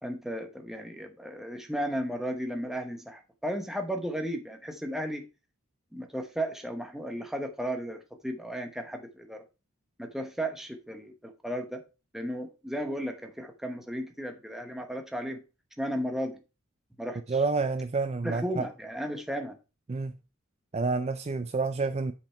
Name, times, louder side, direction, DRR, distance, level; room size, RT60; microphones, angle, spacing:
voice 1, 0.0-5.2 5.9-9.4 10.0-11.8 12.1-15.4 15.8-16.4 17.0-17.4 18.2-19.6, equal, ahead, 0.9 m, -34 dB
voice 2, 17.3-18.7 19.9-20.1 20.7-22.1, right 4 dB, 30° right, 0.4 m, -29 dB
7.4 x 5.7 x 4.4 m
head